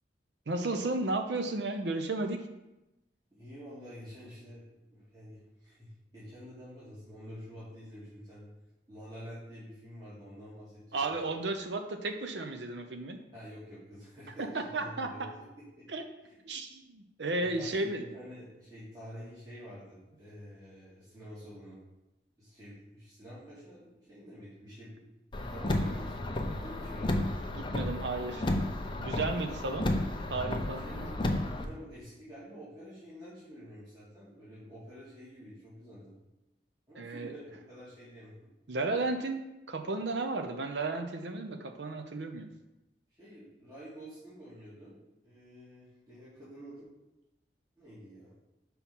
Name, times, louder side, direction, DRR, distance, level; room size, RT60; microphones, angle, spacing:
voice 1, 0.5-2.4 10.9-13.2 14.4-15.3 15.9-16.0 16.4-18.0 27.5-28.5 29.0-29.9 30.3-31.1 37.0-37.3 38.7-42.5, right 2 dB, 70° right, 6 dB, 0.8 m, -34 dB
voice 2, 3.3-4.6 4.9-8.5 8.9-11.4 13.3-15.9 16.2-16.4 17.4-21.8 22.4-25.1 25.3-27.1 30.7-36.1 36.9-38.3 43.2-44.9 45.2-46.9 47.8-48.3, equal, 25° right, -12 dB, 2.5 m, -48 dB
Car, 25.3-31.6, left 1 dB, 30° left, 0.6 m, -32 dB
5.7 x 4.6 x 5.4 m, 0.97 s
head